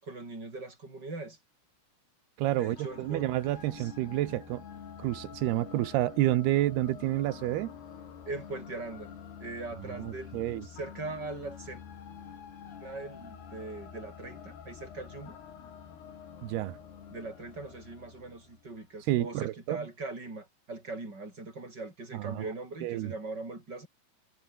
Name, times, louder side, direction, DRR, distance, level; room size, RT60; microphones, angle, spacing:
voice 1, 0.0-1.4 2.5-3.3 3.7-3.9 8.3-9.1 9.4-11.8 12.8-15.4 17.1-23.9, right 3 dB, 20° right, 7.5 m, -41 dB
voice 2, 2.4-4.6 5.0-7.7 9.9-10.6 16.4-16.8 19.1-19.8 22.1-22.4 22.8-23.1, right 15 dB, 75° right, 2.8 m, -29 dB
sound 1, 2.8-19.0, left 7 dB, 65° left, 5.4 m, -47 dB
omnidirectional pair, 5.1 m